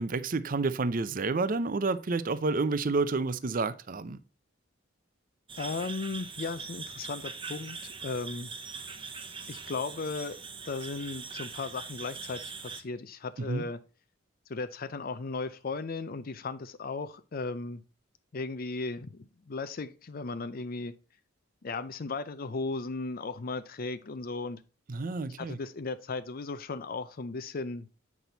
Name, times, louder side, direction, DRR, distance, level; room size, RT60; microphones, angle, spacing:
voice 1, 0.0-4.2 13.5-13.6 24.9-25.6, right 3 dB, 45° right, 0.6 m, -29 dB
sound 1, 5.5-12.8, right 5 dB, 25° right, 0.9 m, -42 dB
voice 2, 5.6-8.5 9.5-10.4 10.6-13.8 14.5-17.8 18.3-20.9 21.6-24.6 25.4-27.9, left 3 dB, 45° left, 0.5 m, -36 dB
8.5 x 6.1 x 4.0 m
head